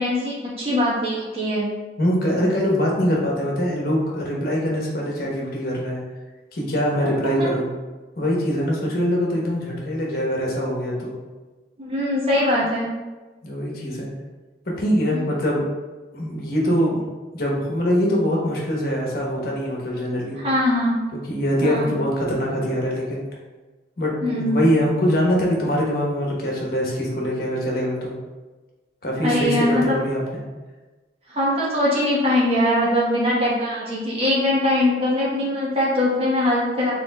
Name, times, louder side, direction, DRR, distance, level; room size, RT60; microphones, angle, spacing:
voice 1, 0.0-1.7 7.0-7.1 7.4-7.5 11.8-13.0 20.4-21.1 21.6-22.0 24.2-24.6 29.2-30.0 31.3-36.9, left 1 dB, 35° right, -6 dB, 1.2 m, -21 dB
voice 2, 2.0-6.0 6.5-7.7 8.2-11.1 13.4-14.1 14.7-15.6 16.1-17.0 17.3-20.4 21.3-23.2 24.0-28.1 29.0-30.4, equal, 55° left, -2 dB, 1.1 m, -23 dB
5.2 x 3.8 x 2.3 m, 1.2 s
head